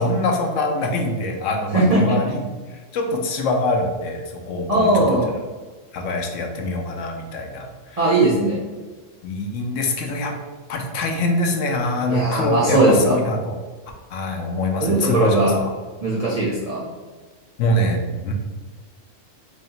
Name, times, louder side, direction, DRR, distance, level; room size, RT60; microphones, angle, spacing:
voice 1, 0.0-2.4 2.9-5.2 5.9-8.0 9.2-10.3 10.7-13.5 14.1-15.7 17.6-18.3, left 1 dB, 75° left, 3 dB, 1.0 m, -24 dB
voice 2, 1.7-2.2 4.7-5.3 8.0-8.6 12.1-13.2 14.8-15.5 16.0-16.8, right 2 dB, 35° right, -7 dB, 0.6 m, -18 dB
3.1 x 2.8 x 4.0 m, 1.4 s
omnidirectional pair, 1.4 m